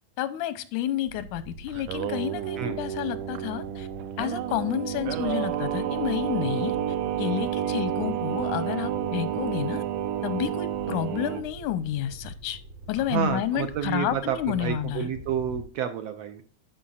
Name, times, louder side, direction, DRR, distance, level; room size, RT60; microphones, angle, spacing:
voice 1, 0.2-3.9 4.2-6.8 7.2-9.8 10.2-12.6 12.9-15.1, left 11 dB, 85° left, 2.1 m, -30 dB
sound 1, 1.1-15.6, right 1 dB, 60° right, 2.4 m, -45 dB
Singing, 1.7-11.4, right 11 dB, 90° right, 2.2 m, -30 dB
sound 2, 4.2-12.1, right 1 dB, 40° right, 1.1 m, -47 dB
voice 2, 13.1-16.4, right 8 dB, 75° right, 1.6 m, -29 dB
13.0 x 5.6 x 2.4 m
omnidirectional pair, 3.5 m